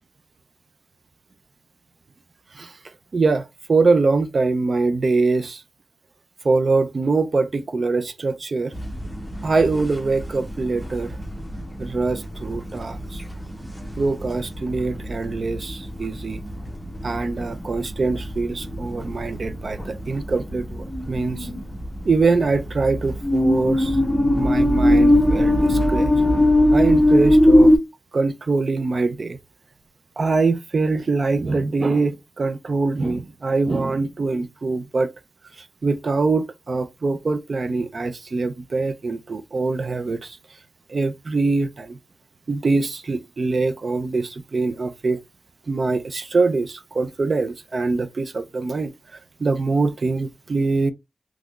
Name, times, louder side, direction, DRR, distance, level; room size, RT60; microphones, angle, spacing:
voice 1, 3.1-5.6 6.4-8.7 9.4-11.2 11.8-13.2 14.0-16.4 17.0-21.5 22.0-24.0 24.4-26.1 26.7-27.7 28.1-29.4 30.2-35.1 35.6-40.4 40.9-42.0 42.5-45.2 45.7-48.9 49.4-50.9, right 3 dB, 55° right, 0.4 m, -23 dB
sound 1, 8.7-27.8, left 1 dB, 5° left, 1.0 m, -20 dB
3.6 x 3.0 x 2.3 m
cardioid pair, 60°, 0 cm